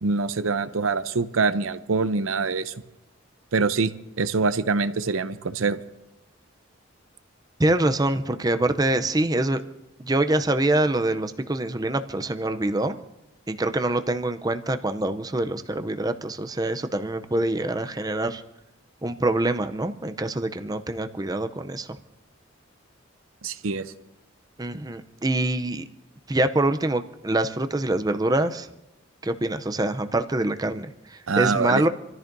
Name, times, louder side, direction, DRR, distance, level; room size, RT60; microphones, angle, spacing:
voice 1, 0.0-2.7 3.5-3.9 4.2-5.8 23.4-23.9 31.3-31.9, right 4 dB, 85° right, 13 dB, 0.7 m, -24 dB
voice 2, 7.6-9.6 10.0-13.0 13.5-18.4 19.0-21.9 24.6-25.8 26.3-28.7 29.2-31.9, right 2 dB, 20° right, 9 dB, 0.6 m, -25 dB
28.0 x 14.0 x 2.7 m, 0.91 s
head